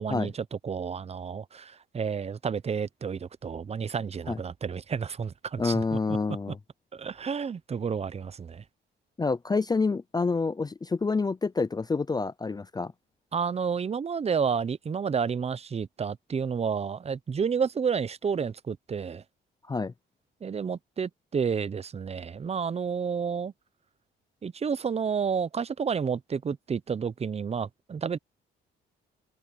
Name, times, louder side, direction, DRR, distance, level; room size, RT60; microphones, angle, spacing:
voice 1, 0.0-6.2 6.9-8.6 13.3-19.2 20.4-23.5 24.4-28.2, right 6 dB, 30° right, 0.7 m, -30 dB
voice 2, 5.6-6.6 9.2-12.9 19.7-19.9, left 4 dB, 20° left, 0.5 m, -28 dB
open air
cardioid pair, 90°, 20 cm